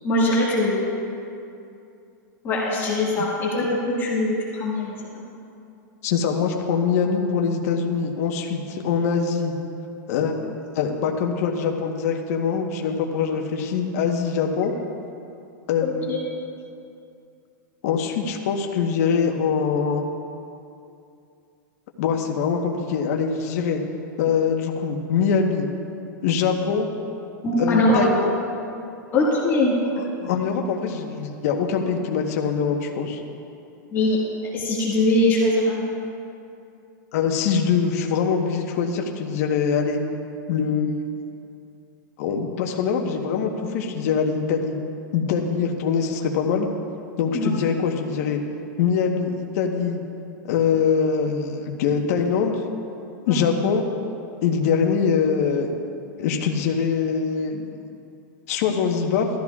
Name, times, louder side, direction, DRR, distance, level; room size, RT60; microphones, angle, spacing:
voice 1, 0.0-0.8 2.4-5.2 15.8-16.2 27.4-28.0 29.1-29.9 33.9-34.2 34.5-35.8 47.3-47.6 53.3-53.4, left 1 dB, 20° left, -5 dB, 1.8 m, -22 dB
voice 2, 6.0-9.5 10.1-10.3 10.7-14.7 15.7-16.2 17.8-20.1 22.0-23.8 24.2-25.7 26.2-26.9 27.6-28.3 30.0-33.2 37.1-40.0 40.5-40.9 42.2-44.8 45.1-46.7 47.2-48.4 48.8-50.0 50.5-52.6 53.3-53.8 54.4-55.7 56.2-57.7 58.5-59.3, left 6 dB, 50° left, 2 dB, 1.2 m, -23 dB
17.0 x 13.5 x 2.4 m, 2.6 s
supercardioid pair, 165°, 10 cm